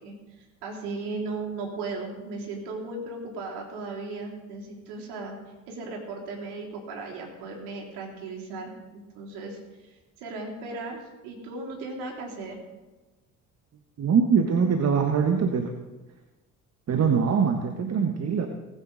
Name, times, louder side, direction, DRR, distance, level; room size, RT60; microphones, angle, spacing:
voice 1, 0.0-5.3 5.7-8.7 9.2-12.6, right 3 dB, 65° right, -1 dB, 3.5 m, -36 dB
voice 2, 14.0-15.7 16.9-18.5, right 6 dB, 35° right, 5 dB, 1.3 m, -23 dB
19.5 x 9.1 x 4.0 m, 1.2 s
hypercardioid pair, 55°, 42 cm